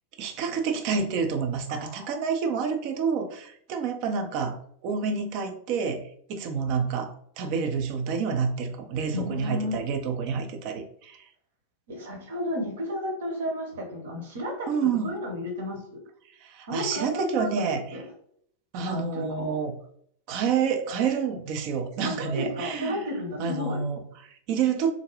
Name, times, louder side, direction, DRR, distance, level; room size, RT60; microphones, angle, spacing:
voice 1, 0.2-4.6 4.8-6.0 6.3-11.2 14.7-15.2 16.4-18.0 18.7-19.7 20.3-23.0 23.4-24.9, right 6 dB, 45° right, 5 dB, 0.5 m, -28 dB
voice 2, 1.7-2.1 9.1-9.7 11.9-14.7 15.0-16.0 16.7-18.0 18.8-19.6 22.0-23.8, left 1 dB, 60° right, 0 dB, 1.0 m, -33 dB
3.7 x 2.2 x 3.1 m, 0.66 s
figure-of-eight pair, 90°, 0 cm